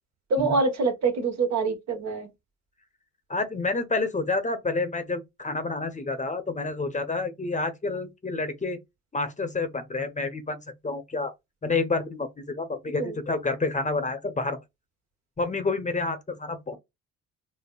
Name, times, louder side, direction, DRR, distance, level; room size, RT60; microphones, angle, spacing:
voice 1, 0.3-2.3 13.0-13.2, right 4 dB, 60° right, 1.5 m, -25 dB
voice 2, 3.3-8.8 9.1-10.6 10.8-11.3 11.6-14.6 15.4-16.8, left 3 dB, 25° left, 0.8 m, -29 dB
5.3 x 2.1 x 2.2 m
cardioid pair, 90°, 30 cm